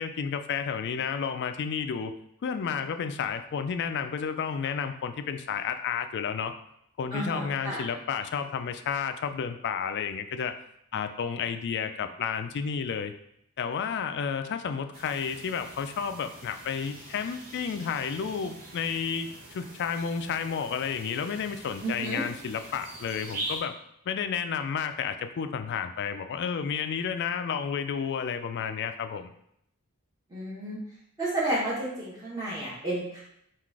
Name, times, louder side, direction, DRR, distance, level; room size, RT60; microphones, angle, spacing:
voice 1, 0.0-2.1 2.4-6.5 7.0-10.5 10.9-13.1 13.6-23.7 24.1-29.3, left 6 dB, 50° left, 9 dB, 0.3 m, -31 dB
voice 2, 7.1-7.8 21.8-22.2 30.3-30.8 31.2-33.2, right 1 dB, 20° right, -7 dB, 1.1 m, -31 dB
sound 1, 14.9-23.6, right 2 dB, 40° right, 1.2 m, -43 dB
3.8 x 2.4 x 4.6 m, 0.74 s
head